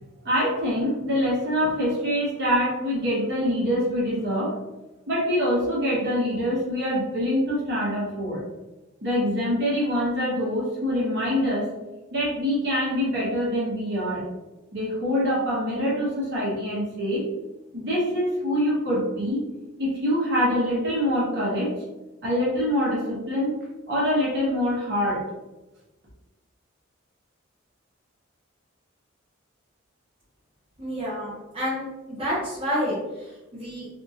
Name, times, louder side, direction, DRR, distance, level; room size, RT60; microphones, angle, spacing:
voice 1, 0.2-4.5 5.1-8.4 9.0-11.7 12.1-14.2 14.7-17.2 17.7-19.4 19.8-21.7 22.2-23.5 23.9-25.2, equal, 55° right, -6 dB, 1.1 m, -25 dB
voice 2, 30.8-33.9, equal, 30° right, -9 dB, 0.9 m, -29 dB
2.8 x 2.5 x 2.7 m, 1.1 s
head